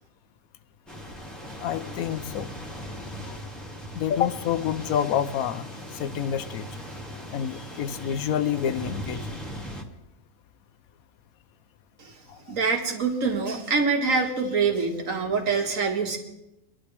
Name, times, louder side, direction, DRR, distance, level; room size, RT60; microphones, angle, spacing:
sound 1, 0.9-9.8, equal, ahead, 1.5 m, -39 dB
voice 1, 1.6-2.5 3.2-3.4 3.9-6.7 7.3-9.4 12.3-12.5, left 9 dB, 75° left, 13 dB, 1.1 m, -28 dB
voice 2, 12.5-16.2, right 4 dB, 65° right, 2 dB, 2.1 m, -25 dB
23.5 x 11.0 x 3.4 m, 0.89 s
omnidirectional pair, 1.5 m